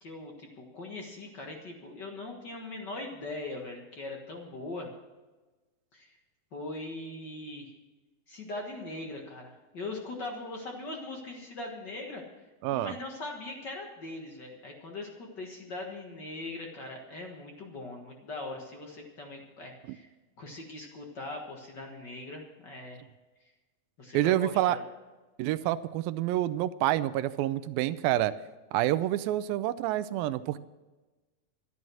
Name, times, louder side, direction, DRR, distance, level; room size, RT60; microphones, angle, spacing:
voice 1, 0.0-4.9 5.9-6.1 6.5-7.7 8.3-12.2 12.7-20.1 20.4-23.0 24.0-24.8, left 2 dB, 55° left, 1 dB, 1.1 m, -40 dB
voice 2, 12.6-12.9 24.1-24.8 25.4-28.3 28.7-30.6, right 14 dB, 80° right, 14 dB, 2.3 m, -28 dB
13.0 x 11.0 x 6.2 m, 1.2 s
omnidirectional pair, 4.4 m